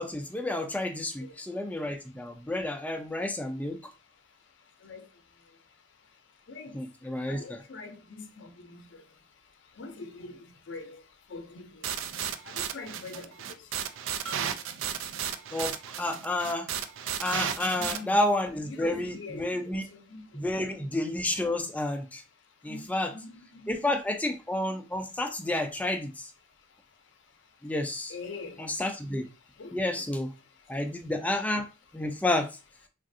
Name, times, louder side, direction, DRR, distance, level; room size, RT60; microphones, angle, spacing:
voice 1, 0.0-3.9 6.7-7.6 15.5-16.7 17.2-19.8 20.3-22.2 22.6-23.1 23.7-26.3 27.6-28.1 28.6-29.2 29.7-30.3 30.7-32.6, left 1 dB, 10° left, 0.3 m, -30 dB
voice 2, 7.3-9.0 9.8-10.4 10.7-11.0 11.3-11.8 12.5-13.3 17.6-18.2 18.7-19.5 19.7-20.2 22.7-23.9 28.1-28.6 29.6-30.0, left 3 dB, 75° left, 0.5 m, -43 dB
sound 1, 11.8-18.0, right 8 dB, 80° right, 0.3 m, -34 dB
3.3 x 2.4 x 2.6 m
head